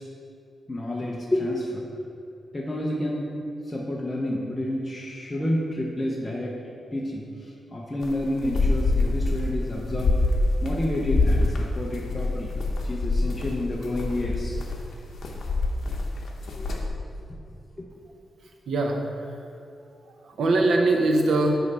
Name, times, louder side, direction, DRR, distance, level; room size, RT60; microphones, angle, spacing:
voice 1, 0.7-1.8 2.5-3.3 3.7-6.6 6.9-10.2 10.6-12.5 12.8-14.6 16.6-16.7, left 1 dB, 15° left, -3 dB, 0.6 m, -29 dB
sound 1, 8.0-16.9, left 2 dB, 60° left, 0.8 m, -25 dB
voice 2, 18.4-19.4 19.8-21.6, right 2 dB, 75° right, 2 dB, 0.7 m, -23 dB
8.0 x 3.2 x 5.3 m, 2.7 s
wide cardioid pair, 170°, 0 cm